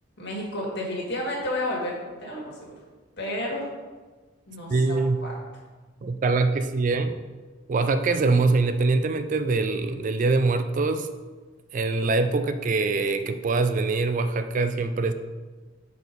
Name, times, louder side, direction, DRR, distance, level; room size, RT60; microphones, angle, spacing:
voice 1, 0.2-2.7 3.2-3.7 4.5-5.3, left 1 dB, 60° left, -2 dB, 1.8 m, -31 dB
voice 2, 4.7-5.2 6.0-7.2 7.7-11.1 11.7-15.1, right 3 dB, 40° right, 10 dB, 0.3 m, -23 dB
6.3 x 4.5 x 5.2 m, 1.4 s
head